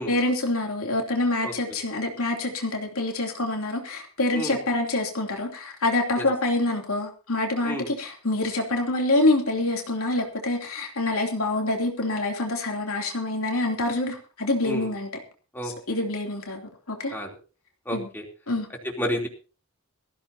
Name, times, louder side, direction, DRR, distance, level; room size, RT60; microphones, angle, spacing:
voice 1, 0.0-15.1 15.9-16.6 16.9-17.1 17.9-18.1 18.5-18.7, left 2 dB, 75° left, 2 dB, 3.1 m, -26 dB
voice 2, 15.5-16.0 17.1-17.3 17.8-18.2 18.8-19.3, equal, 10° left, 0 dB, 3.4 m, -31 dB
20.0 x 15.0 x 2.9 m, 0.35 s
head